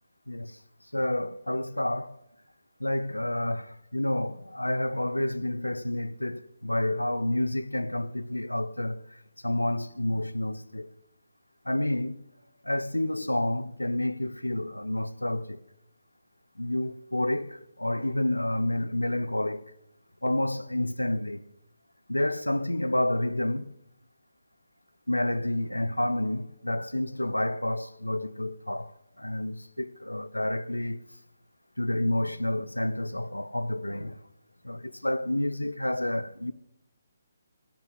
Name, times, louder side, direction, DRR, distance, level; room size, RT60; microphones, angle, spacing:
voice 1, 0.3-0.6 0.9-2.2 2.8-9.0 9.4-10.9 11.7-12.2 12.6-15.6 16.6-19.6 20.2-21.4 22.1-23.7 25.1-28.9 29.2-31.0 31.8-34.2 34.6-36.5, left 1 dB, 85° left, 0.7 m, -29 dB
14.0 x 8.6 x 7.9 m
figure-of-eight pair, 140°, 0 cm